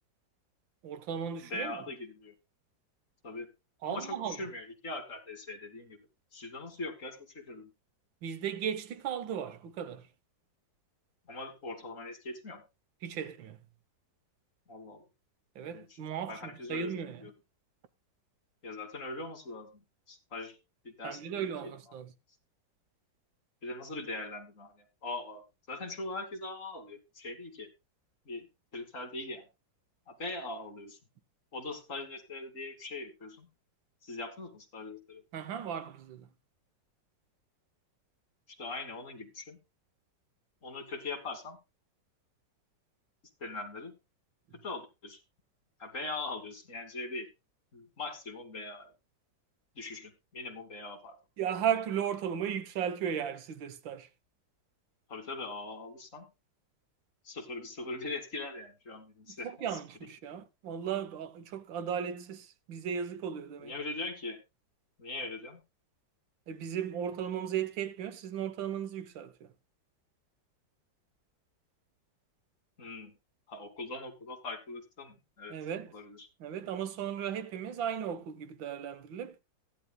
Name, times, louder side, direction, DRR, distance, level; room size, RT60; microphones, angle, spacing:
voice 1, 0.8-1.8 3.8-4.4 8.2-10.1 13.0-13.6 15.6-17.3 21.0-22.1 35.3-36.3 51.4-54.1 59.3-63.7 66.5-69.5 75.5-75.9 76.4-79.4, right 8 dB, 85° right, 1.7 m, -36 dB
voice 2, 1.4-2.3 3.2-3.5 3.8-6.0 6.3-7.7 11.3-12.6 14.7-15.0 15.6-16.0 16.3-17.3 18.6-20.6 20.8-21.9 23.6-25.4 25.7-27.7 28.3-28.5 28.7-29.5 30.1-31.0 31.5-33.5 34.0-35.2 38.5-39.6 40.6-41.6 43.4-43.9 44.6-45.2 45.8-47.3 47.7-48.9 49.8-51.2 55.1-56.3 57.2-59.5 60.3-60.4 63.6-64.4 65.0-65.6 72.8-73.1 73.5-75.6 75.9-76.3, left 2 dB, 45° left, 2.3 m, -41 dB
16.0 x 11.0 x 2.2 m
omnidirectional pair, 2.0 m